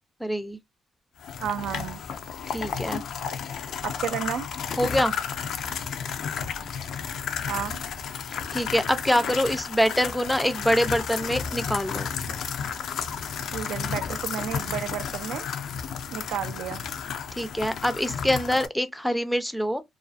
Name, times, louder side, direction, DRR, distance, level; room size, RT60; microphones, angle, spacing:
voice 1, 0.2-0.6 2.5-3.0 4.8-5.1 8.5-12.1 17.4-19.8, equal, 5° left, 0.4 m, -25 dB
sound 1, 1.2-18.7, left 7 dB, 70° left, 0.4 m, -32 dB
voice 2, 1.4-2.0 3.8-4.5 7.5-7.8 13.5-15.5 16.1-16.9, right 9 dB, 80° right, 0.3 m, -32 dB
2.4 x 2.3 x 2.4 m
cardioid pair, 90°, 0 cm